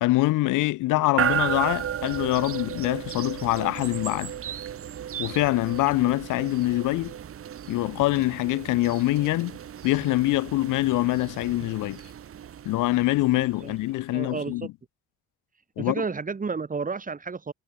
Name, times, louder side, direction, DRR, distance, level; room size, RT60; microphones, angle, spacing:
voice 1, 0.0-4.3 5.2-7.1 7.7-9.6 9.8-12.0 12.6-14.6 15.8-15.9, left 18 dB, 90° left, 0.9 m, -24 dB
sound 1, 1.2-14.2, right 9 dB, 50° right, 1.0 m, -34 dB
voice 2, 14.1-14.7 15.8-17.5, right 4 dB, 25° right, 1.7 m, -31 dB
cardioid pair, 90°, 30 cm